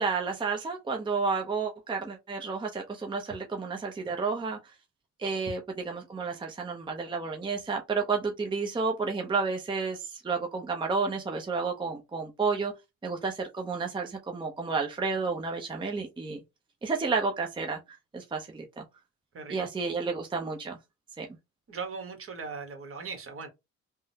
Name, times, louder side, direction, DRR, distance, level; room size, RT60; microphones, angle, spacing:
voice 1, 0.0-4.6 5.2-12.7 13.0-16.4 16.8-17.8 18.1-18.8 19.5-20.8 21.2-21.3, right 4 dB, 15° right, 0.6 m, -31 dB
voice 2, 19.3-19.7 21.7-23.5, right 5 dB, 45° right, 1.1 m, -39 dB
3.6 x 2.0 x 2.7 m
cardioid pair, 90°, 30 cm